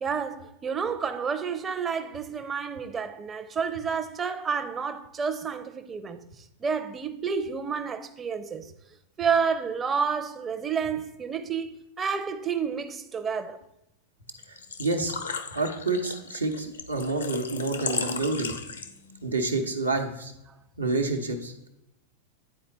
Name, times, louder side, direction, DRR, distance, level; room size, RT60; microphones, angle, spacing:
voice 1, 0.0-8.7 9.2-11.7 12.0-13.6, right 6 dB, 20° right, 0.5 m, -30 dB
Engine / Trickle dribble / Fill (with liquid), 14.3-19.2, left 5 dB, 80° left, 0.6 m, -35 dB
voice 2, 14.5-15.1 15.5-18.6 19.2-20.3 20.8-21.7, right 3 dB, 90° right, 0.9 m, -28 dB
9.4 x 4.3 x 3.9 m
figure-of-eight pair, 95°, 0 cm